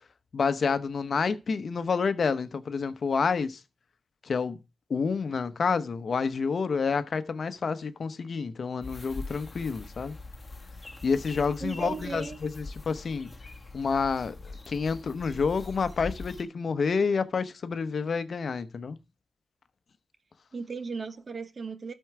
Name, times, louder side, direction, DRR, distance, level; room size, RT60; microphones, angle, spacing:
voice 1, 0.3-3.6 4.2-4.6 4.9-10.2 11.0-13.3 13.7-14.3 14.7-19.0, left 5 dB, 55° left, 0.8 m, -28 dB
sound 1, 8.8-16.4, left 3 dB, 20° left, 1.8 m, -43 dB
voice 2, 11.6-12.4 20.5-21.9, right 4 dB, 45° right, 1.1 m, -36 dB
12.5 x 4.5 x 4.6 m
cardioid pair, 90°, 0 cm